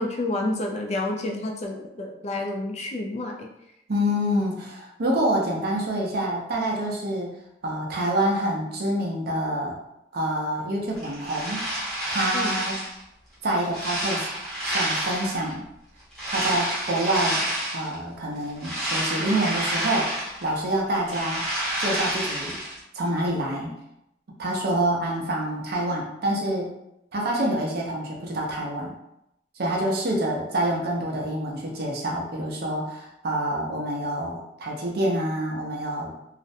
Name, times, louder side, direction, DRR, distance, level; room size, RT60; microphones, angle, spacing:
voice 1, 0.0-3.5 12.3-12.6, left 2 dB, 35° left, 1 dB, 0.3 m, -29 dB
voice 2, 3.9-7.3 7.6-9.8 10.1-11.6 12.1-12.7 13.4-14.3 14.6-15.6 16.3-17.4 17.7-20.1 20.4-21.4 21.8-22.6 22.9-23.7 24.4-26.7 27.1-28.9 29.6-36.1, right 1 dB, 60° right, -1 dB, 0.5 m, -27 dB
sound 1, 11.0-13.0 13.4-15.5 16.1-17.9 18.4-20.6 20.9-22.8, right 1 dB, 5° left, 0.8 m, -29 dB
2.4 x 2.0 x 2.6 m, 0.82 s
head